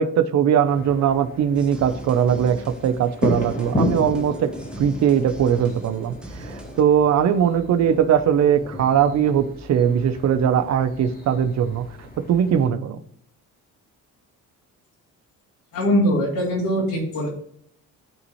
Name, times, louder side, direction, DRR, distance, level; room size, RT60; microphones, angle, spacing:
voice 1, 0.0-4.5 4.8-11.9 12.2-13.0, right 8 dB, 55° right, 10 dB, 0.7 m, -20 dB
sound 1, 0.7-12.7, left 1 dB, 25° left, 2.2 m, -33 dB
sound 2, 1.6-6.8, right 1 dB, 5° right, 0.9 m, -41 dB
voice 2, 15.7-17.3, equal, 80° left, -4 dB, 2.9 m, -21 dB
12.5 x 4.2 x 3.1 m, 0.67 s
cardioid pair, 120°, 33 cm